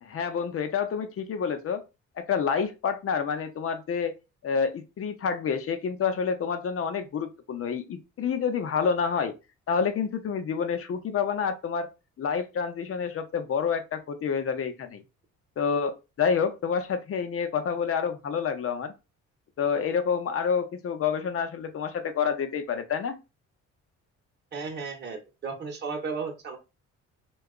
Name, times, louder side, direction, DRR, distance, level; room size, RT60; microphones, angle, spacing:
voice 1, 0.0-1.8 2.2-4.1 4.4-9.3 9.7-11.9 12.2-15.0 15.6-18.9 19.6-23.2, left 6 dB, 50° left, 0.7 m, -28 dB
voice 2, 24.5-26.6, right 5 dB, 35° right, 0.9 m, -34 dB
2.8 x 2.3 x 3.6 m
cardioid pair, 90°, 30 cm